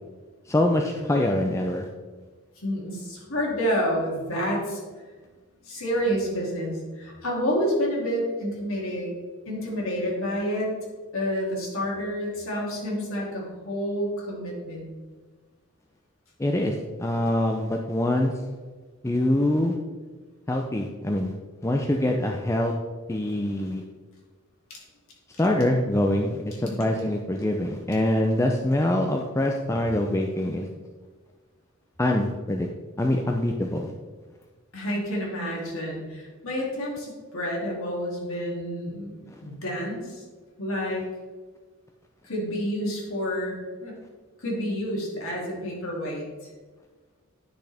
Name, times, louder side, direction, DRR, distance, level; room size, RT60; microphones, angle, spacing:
voice 1, 0.5-1.9 16.4-18.3 19.0-19.8 20.5-21.3 21.6-22.8 23.1-23.8 25.4-30.7 32.0-32.7 33.0-33.9 39.3-39.4, left 1 dB, 15° left, 2 dB, 0.4 m, -24 dB
voice 2, 2.6-4.8 5.6-9.1 9.5-10.7 11.1-14.9 24.7-24.8 26.6-26.8 34.7-40.2 40.6-41.0 42.2-44.0 44.4-46.2, equal, 70° left, -3 dB, 2.6 m, -29 dB
10.0 x 6.4 x 3.4 m, 1.4 s
head